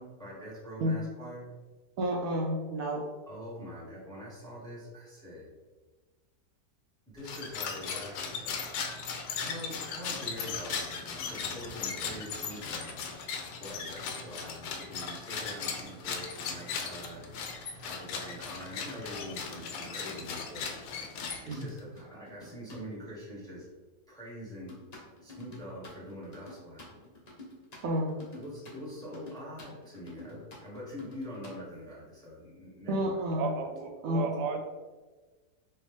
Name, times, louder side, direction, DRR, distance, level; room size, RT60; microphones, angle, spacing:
voice 1, 0.0-1.5 3.3-5.5 7.1-8.7 9.3-10.9 11.2-13.0 13.5-17.4 17.8-20.7 21.4-23.7 24.1-24.8 25.2-27.0 28.3-33.1, equal, 5° left, -7 dB, 1.0 m, -44 dB
voice 2, 2.0-3.0 21.5-21.7 27.8-28.2 32.9-33.5 34.0-34.4, equal, 70° right, -2 dB, 0.9 m, -30 dB
sound 1, 7.2-21.8, left 5 dB, 80° left, 1.1 m, -38 dB
sound 2, 19.4-22.8 24.7-31.5, left 2 dB, 35° left, 0.6 m, -50 dB
voice 3, 33.3-34.6, right 5 dB, 90° right, 6 dB, 1.2 m, -34 dB
4.4 x 2.7 x 3.4 m, 1.3 s
omnidirectional pair, 1.8 m